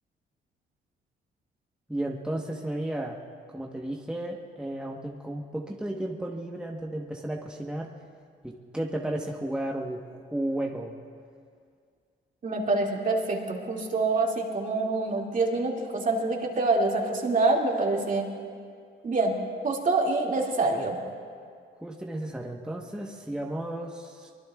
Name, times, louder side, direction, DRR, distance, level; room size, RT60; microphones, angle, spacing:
voice 1, 1.9-3.2 3.5-7.9 8.4-10.9 21.8-24.3, right 1 dB, 5° right, -1 dB, 1.1 m, -33 dB
voice 2, 12.4-18.3 19.0-19.3 19.6-21.0, right 3 dB, 40° right, 0 dB, 2.3 m, -26 dB
23.5 x 21.0 x 2.4 m, 2.2 s
cardioid pair, 90°, 20 cm